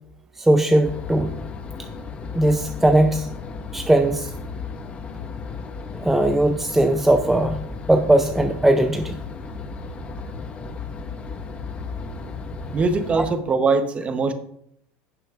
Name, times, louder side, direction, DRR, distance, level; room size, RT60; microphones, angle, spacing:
voice 1, 0.4-1.3 2.3-3.3 3.7-4.3 6.0-7.6 7.9-9.2 13.2-13.3, right 1 dB, 5° right, 6 dB, 0.5 m, -19 dB
sound 1, 0.8-13.4, left 4 dB, 25° left, 0.9 m, -34 dB
voice 2, 12.7-14.3, right 4 dB, 25° right, 9 dB, 0.9 m, -21 dB
15.5 x 6.9 x 2.5 m, 0.73 s
supercardioid pair, 130°, 5 cm